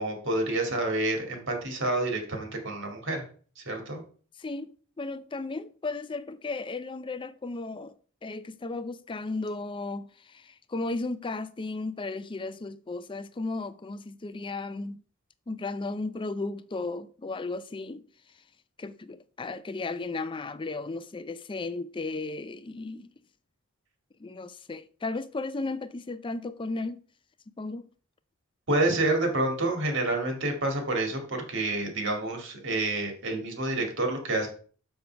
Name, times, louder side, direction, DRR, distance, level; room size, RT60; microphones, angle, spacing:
voice 1, 0.0-3.2 3.6-4.0 28.7-34.5, right 2 dB, 65° right, 2.1 m, -28 dB
voice 2, 4.4-7.9 8.2-15.0 15.5-18.0 18.8-23.1 24.2-27.0 27.6-27.9, left 3 dB, 25° left, 0.4 m, -35 dB
6.8 x 5.4 x 4.5 m
head